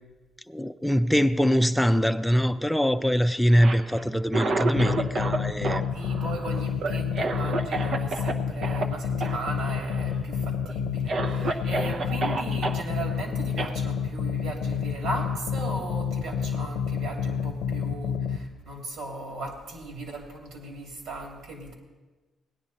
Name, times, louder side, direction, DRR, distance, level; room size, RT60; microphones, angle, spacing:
voice 1, 0.5-5.9, equal, ahead, 0.5 m, -23 dB
Cough, 3.5-5.4 5.6-8.3 8.6-8.8 9.2-9.4 9.7-10.2 10.6-10.7 11.1-12.8 13.6-13.7, right 3 dB, 55° right, 0.9 m, -30 dB
sound 1, 4.7-18.4, left 7 dB, 80° left, 0.6 m, -29 dB
voice 2, 5.9-21.7, right 2 dB, 80° right, 3.0 m, -37 dB
17.5 x 10.5 x 4.2 m
cardioid pair, 90°, 0 cm